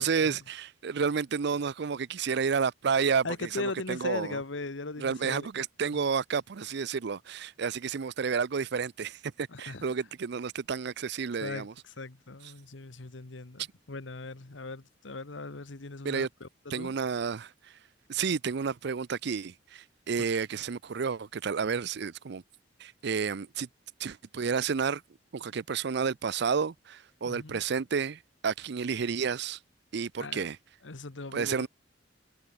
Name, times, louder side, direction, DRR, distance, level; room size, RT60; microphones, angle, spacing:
voice 1, 0.0-4.4 5.0-11.7 16.0-16.3 16.7-17.5 18.1-22.4 22.8-23.7 24.0-25.0 25.3-29.6 29.9-30.6 31.3-31.7, right 6 dB, 65° right, 0.5 m, -31 dB
voice 2, 3.2-5.6 5.9-6.0 9.5-9.9 11.4-16.5 16.7-16.9 20.2-20.3 27.2-27.6 30.2-30.5 30.8-31.7, left 3 dB, 80° left, 1.3 m, -39 dB
head